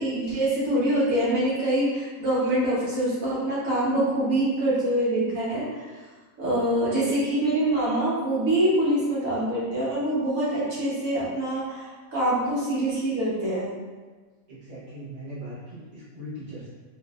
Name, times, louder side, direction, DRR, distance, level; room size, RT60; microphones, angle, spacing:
voice 1, 0.0-5.9 6.4-13.7, right 1 dB, 80° right, -8 dB, 1.4 m, -25 dB
voice 2, 14.5-16.7, equal, 40° right, -9 dB, 1.2 m, -39 dB
3.7 x 2.6 x 2.4 m, 1.3 s
omnidirectional pair, 1.4 m